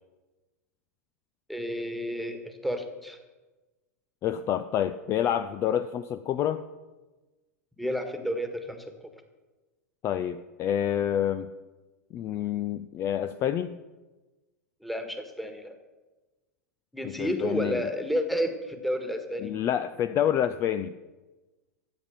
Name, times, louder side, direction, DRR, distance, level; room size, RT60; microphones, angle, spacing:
voice 1, 1.5-3.2 7.8-8.9 14.8-15.8 16.9-19.5, equal, ahead, 6 dB, 1.7 m, -31 dB
voice 2, 4.2-6.6 10.0-11.5 12.1-13.8 17.2-17.9 19.4-20.9, left 10 dB, 30° left, 11 dB, 0.5 m, -28 dB
13.0 x 8.8 x 7.1 m, 1.2 s
figure-of-eight pair, 90°, 9 cm